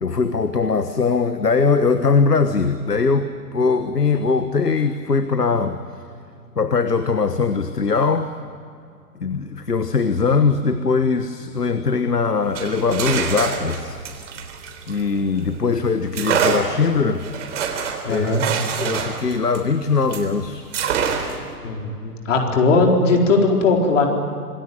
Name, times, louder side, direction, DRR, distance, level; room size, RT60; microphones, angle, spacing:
voice 1, 0.0-5.8 6.6-8.3 9.2-14.0 14.9-17.3 18.1-18.4 18.8-20.7, left 4 dB, 85° left, 11 dB, 1.4 m, -21 dB
sound 1, 12.4-15.5 16.1-20.3 20.7-21.5, right 7 dB, 50° right, 3.7 m, -26 dB
voice 2, 18.0-18.5 21.6-24.1, left 3 dB, 50° left, 1 dB, 4.5 m, -18 dB
26.5 x 19.5 x 9.4 m, 2.4 s
figure-of-eight pair, 120°, 46 cm